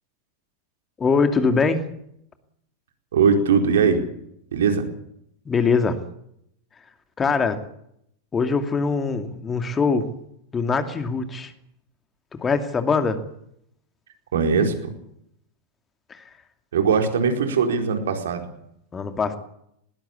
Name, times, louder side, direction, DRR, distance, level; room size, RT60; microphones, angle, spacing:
voice 1, 1.0-1.8 5.5-6.0 7.2-7.6 8.3-10.1 10.5-11.5 12.3-13.2 16.1-16.2 18.9-19.4, left 4 dB, 20° left, 8 dB, 2.6 m, -22 dB
voice 2, 3.1-4.0 4.5-4.9 14.3-14.9 16.7-18.4, right 5 dB, 60° right, 5 dB, 4.4 m, -20 dB
20.0 x 19.5 x 8.4 m, 0.74 s
figure-of-eight pair, 90°, 0 cm